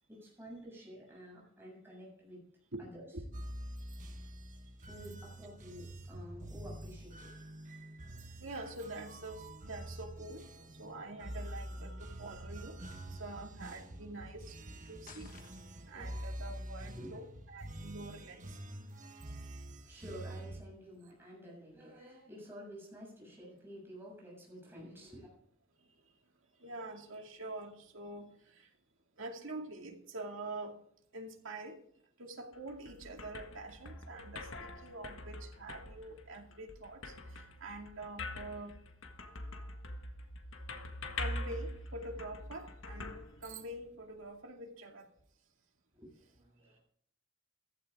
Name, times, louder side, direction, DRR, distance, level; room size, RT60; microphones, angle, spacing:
voice 1, 0.1-2.5 2.8-3.1 4.9-7.3 14.8-15.2 15.9-16.2 16.9-17.2 19.8-25.3 45.9-46.8, equal, 10° right, -4 dB, 7.1 m, -51 dB
sound 1, 3.3-20.6, right 1 dB, 35° right, 1.2 m, -46 dB
voice 2, 8.4-14.6 14.9-15.3 15.9-18.6 26.6-28.7 29.2-30.8 31.1-31.8 32.2-38.8 41.2-45.1, right 2 dB, 70° right, 2 dB, 2.4 m, -46 dB
sound 2, 15.1-16.0, left 5 dB, 40° left, 1.6 m, -55 dB
sound 3, 32.5-44.0, left 2 dB, 70° left, 1.5 m, -44 dB
15.0 x 12.5 x 3.7 m, 0.65 s
head